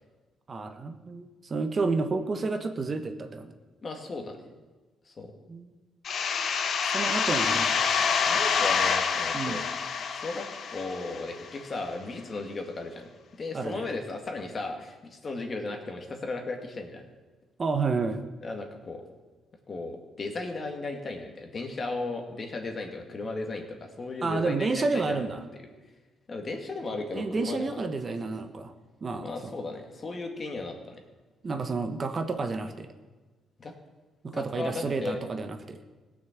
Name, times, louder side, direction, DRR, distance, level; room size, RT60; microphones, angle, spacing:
voice 1, 0.5-3.5 5.5-5.7 6.8-7.8 9.3-9.6 13.5-13.9 17.6-18.2 24.2-25.4 27.1-28.7 29.0-29.5 31.4-32.9 34.2-35.8, right 3 dB, 40° right, 7 dB, 1.1 m, -30 dB
voice 2, 3.8-4.4 5.1-5.3 7.4-7.8 8.1-9.6 10.1-13.1 13.4-17.0 18.4-19.0 19.7-25.2 26.3-27.8 29.2-31.0 33.6-33.7 34.3-35.2, left 3 dB, 40° left, 3 dB, 2.1 m, -36 dB
sound 1, 6.0-11.5, left 6 dB, 60° left, 1.1 m, -27 dB
17.0 x 6.4 x 7.5 m, 1.3 s
cardioid pair, 90°, 0 cm